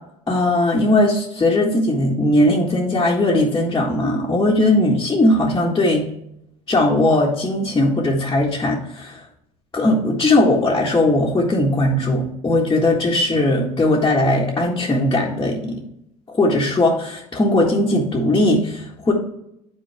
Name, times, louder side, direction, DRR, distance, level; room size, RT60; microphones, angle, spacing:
voice 1, 0.3-6.1 6.7-9.2 9.7-15.8 16.3-19.1, left 1 dB, 20° left, -4 dB, 1.7 m, -18 dB
8.9 x 4.5 x 3.5 m, 0.77 s
hypercardioid pair, 85°, 19 cm